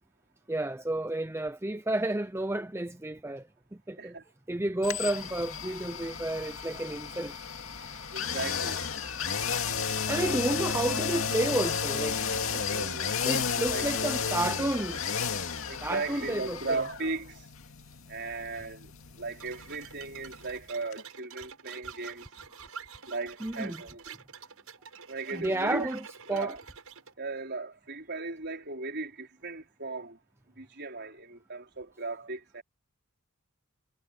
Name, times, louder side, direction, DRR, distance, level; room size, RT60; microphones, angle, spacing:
voice 1, 0.5-3.5 3.7-4.1 4.5-7.3 10.1-12.2 12.5-12.6 13.3-15.0 15.8-16.6 23.4-23.8 25.3-26.0 26.3-26.5, right 1 dB, 10° right, 0.7 m, -31 dB
voice 2, 4.0-4.3 5.6-5.7 8.1-8.8 12.6-13.2 13.7-14.1 15.7-17.5 18.1-18.9 19.2-22.3 23.1-24.2 25.1-25.9 26.3-26.6 27.2-30.2 30.6-32.6, right 3 dB, 50° right, 5.0 m, -37 dB
sound 1, 4.8-20.6 20.9-21.0, left 6 dB, 65° left, 2.3 m, -33 dB
sound 2, 19.4-27.1, right 6 dB, 80° right, 6.4 m, -48 dB
head